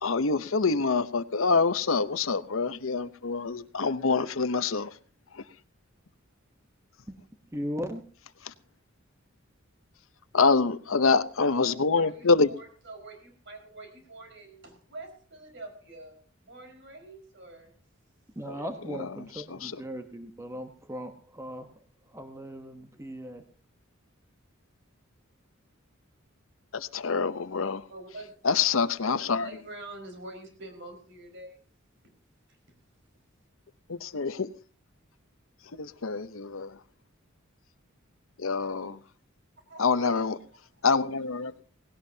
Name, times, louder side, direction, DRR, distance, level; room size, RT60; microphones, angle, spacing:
voice 1, 0.0-4.9 8.5-8.6 10.3-12.5 18.5-18.6 19.5-19.7 26.7-27.8 28.4-29.5 33.9-34.5 35.8-36.7 38.4-39.0 39.8-40.4 40.8-41.6, left 4 dB, 70° left, 0.8 m, -26 dB
voice 2, 7.5-8.0 18.4-21.7 22.1-23.4, equal, 15° right, 1.0 m, -38 dB
voice 3, 11.4-16.2 16.4-17.7 27.9-28.6 29.0-31.6 39.7-40.2 40.5-40.8, right 2 dB, 60° right, 4.9 m, -46 dB
18.5 x 17.0 x 2.8 m
head